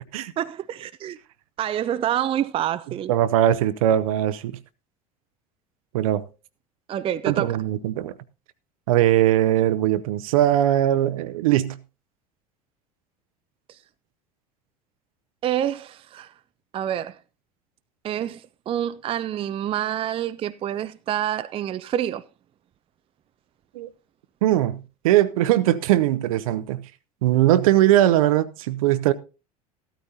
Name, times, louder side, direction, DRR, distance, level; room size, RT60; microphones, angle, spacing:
voice 1, 0.4-1.2 1.6-3.1 6.9-7.6 15.4-16.3 16.7-17.2 18.0-22.2, right 11 dB, 30° right, 0.5 m, -27 dB
voice 2, 3.1-4.6 5.9-6.3 7.3-8.1 8.9-11.8 23.7-23.9 24.4-26.8 27.2-29.1, right 13 dB, 60° right, 0.7 m, -20 dB
14.0 x 13.0 x 2.7 m
figure-of-eight pair, 75°, 20 cm